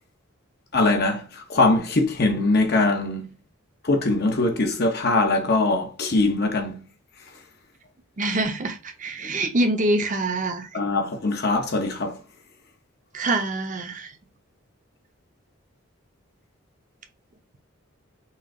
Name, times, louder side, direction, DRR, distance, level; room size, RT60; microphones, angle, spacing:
voice 1, 0.7-3.3 3.8-6.8 9.2-9.3 10.7-12.2, left 2 dB, 50° left, 0.8 m, -22 dB
voice 2, 8.2-10.7 13.1-14.1, right 2 dB, 40° right, 0.8 m, -25 dB
5.6 x 2.5 x 3.7 m
head